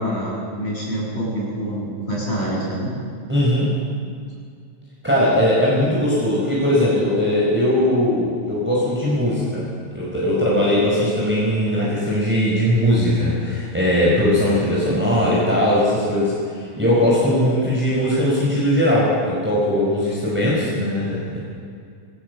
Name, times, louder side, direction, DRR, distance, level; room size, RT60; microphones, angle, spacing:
voice 1, 0.0-2.9, right 1 dB, 20° left, -5 dB, 8.1 m, -26 dB
voice 2, 3.3-3.7 5.0-9.6 9.9-21.4, left 1 dB, 5° right, -6 dB, 5.2 m, -19 dB
23.5 x 18.0 x 7.1 m, 2.3 s
omnidirectional pair, 3.3 m